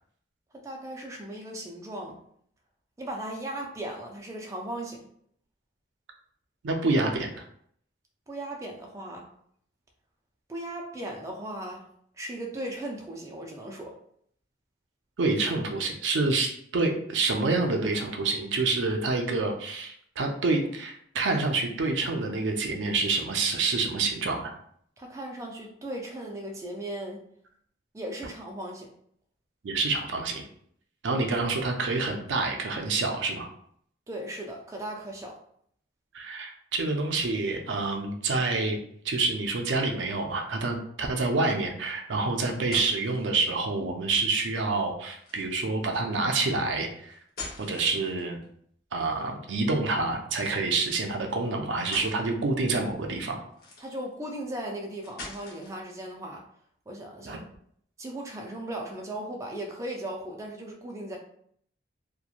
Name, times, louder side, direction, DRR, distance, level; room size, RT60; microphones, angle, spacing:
voice 1, 0.5-2.2 3.0-5.1 8.3-9.3 10.5-11.9 12.2-14.0 25.0-27.2 27.9-28.9 34.1-35.4 53.8-56.4 56.9-57.4 58.0-61.2, right 1 dB, 15° right, 0 dB, 0.3 m, -37 dB
voice 2, 6.6-7.4 15.2-24.5 29.6-30.5 31.0-33.5 36.1-38.8 39.0-47.2 47.6-48.4 48.9-53.4 57.2-57.4, right 3 dB, 85° right, 3 dB, 0.5 m, -27 dB
sound 1, 42.3-43.3 45.2-45.7 47.1-48.4 50.3-50.6 51.3-51.4 51.8-52.2 53.5-54.1 55.0-55.8, left 2 dB, 55° left, 0.8 m, -42 dB
2.8 x 2.2 x 2.4 m, 0.65 s
head